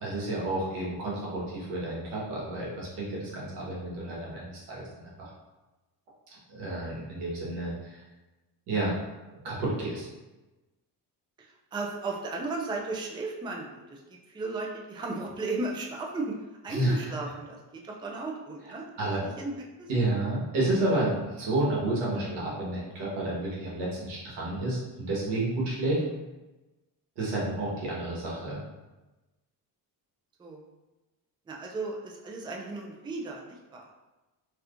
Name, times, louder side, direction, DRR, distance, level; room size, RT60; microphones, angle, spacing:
voice 1, 0.0-4.9 5.2-5.3 6.5-8.0 8.7-8.9 9.4-10.1 16.7-17.1 19.0-19.2 19.9-26.0 27.2-28.6, right 2 dB, 90° right, -5 dB, 1.3 m, -30 dB
voice 2, 11.4-14.0 14.3-16.4 16.6-17.6 17.8-18.9 19.2-19.9 22.2-22.3 27.2-27.4 30.4-30.6 31.5-33.9, right 3 dB, 10° right, 0 dB, 0.3 m, -35 dB
3.3 x 2.9 x 2.5 m, 1.1 s
cardioid pair, 105°, 40 cm